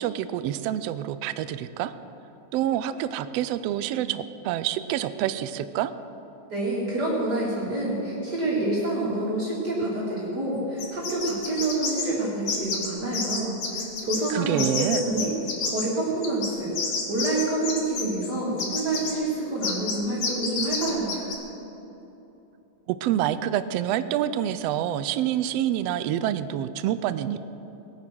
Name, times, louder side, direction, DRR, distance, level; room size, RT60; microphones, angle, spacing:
voice 1, 0.0-1.9 2.5-5.9 14.3-15.0 22.9-27.4, right 11 dB, 80° right, 13 dB, 1.5 m, -27 dB
voice 2, 6.5-15.3 15.6-21.3, right 2 dB, 35° right, -7 dB, 3.3 m, -28 dB
sound 1, 10.8-12.1 12.5-12.9 13.1-14.3 14.6-15.9 16.2-18.3 18.6-19.1 19.6-20.0 20.2-21.3, left 5 dB, 65° left, 2.8 m, -29 dB
19.5 x 9.5 x 6.2 m, 3.0 s
omnidirectional pair, 3.3 m